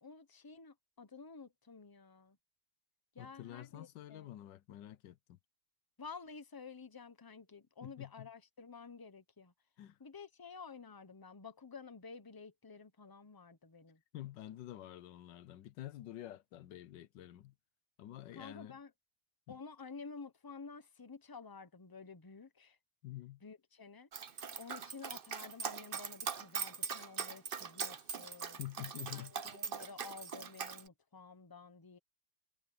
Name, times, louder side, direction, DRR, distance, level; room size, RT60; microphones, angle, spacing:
voice 1, 0.0-2.4 3.1-4.3 6.0-9.5 10.0-14.0 18.3-18.9 19.5-22.8 23.4-24.1 24.6-28.6 29.1-32.0, left 5 dB, 20° left, 0.6 m, -51 dB
voice 2, 3.2-5.4 7.8-8.3 9.8-10.0 14.1-17.5 18.0-18.8 19.5-19.6 23.0-23.4 28.6-29.3, left 14 dB, 85° left, 1.4 m, -48 dB
Dog, 24.1-30.8, right 6 dB, 40° right, 0.8 m, -41 dB
omnidirectional pair, 1.9 m